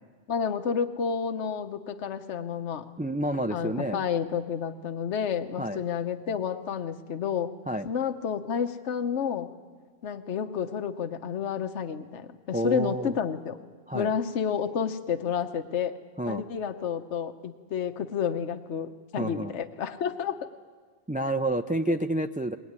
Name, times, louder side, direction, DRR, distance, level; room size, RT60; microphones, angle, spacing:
voice 1, 0.3-2.9 3.5-7.5 7.8-9.5 10.0-13.6 13.9-16.0 16.3-20.4 21.9-22.0, left 7 dB, 70° left, 8 dB, 1.2 m, -30 dB
voice 2, 3.0-4.0 5.6-5.8 7.7-7.9 12.5-13.2 13.9-14.1 16.2-16.4 19.2-19.5 21.1-22.5, right 1 dB, 15° right, 6 dB, 0.3 m, -29 dB
21.0 x 20.0 x 9.6 m, 1.5 s
omnidirectional pair, 1.2 m